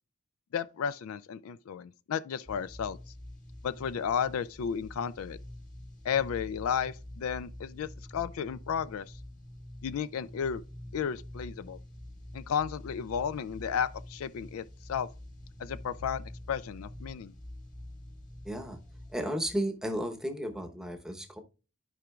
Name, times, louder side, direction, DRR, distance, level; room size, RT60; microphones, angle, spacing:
voice 1, 0.5-3.0 3.6-5.4 6.0-9.1 9.8-10.6 10.9-11.8 12.3-15.1 15.6-17.3, left 7 dB, 70° left, 0.4 m, -33 dB
sound 1, 2.5-19.2, left 1 dB, 35° left, 1.6 m, -46 dB
voice 2, 18.5-18.8 19.1-21.4, equal, 5° right, 0.9 m, -33 dB
13.5 x 5.0 x 2.3 m
head